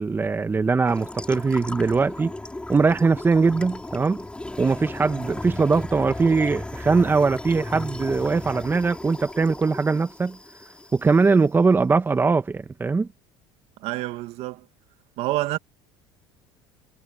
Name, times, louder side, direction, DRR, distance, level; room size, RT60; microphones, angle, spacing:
voice 1, 0.0-2.3 2.7-4.2 4.6-10.4 10.9-13.1, right 4 dB, 20° right, 1.3 m, -21 dB
sound 1, 0.9-11.3, left 2 dB, 10° left, 4.1 m, -36 dB
voice 2, 13.8-14.7 15.2-15.6, right 17 dB, 65° right, 2.2 m, -27 dB
supercardioid pair, 95°, 11 cm